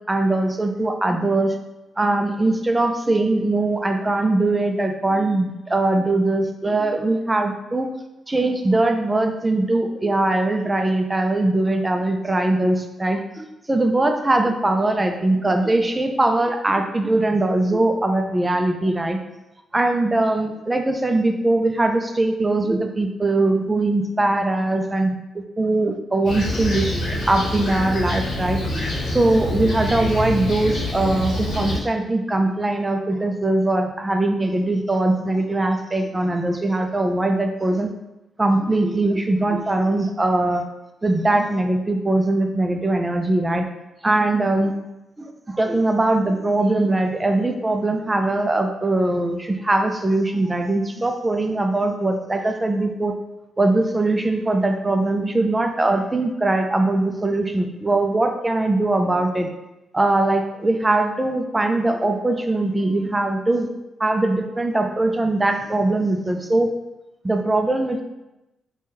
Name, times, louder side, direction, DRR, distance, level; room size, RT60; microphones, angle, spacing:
voice 1, 0.1-1.6 2.0-7.9 8.3-19.2 19.7-28.6 29.1-37.9 38.4-40.6 41.0-43.7 44.0-44.7 45.2-53.1 53.6-59.5 59.9-63.7 64.0-66.7 67.2-68.0, right 2 dB, 20° right, 5 dB, 0.4 m, -21 dB
Fixed-wing aircraft airplane, 26.2-31.8, left 1 dB, 70° left, 0.9 m, -26 dB
3.4 x 2.2 x 2.8 m, 0.94 s
cardioid pair, 80°, 0 cm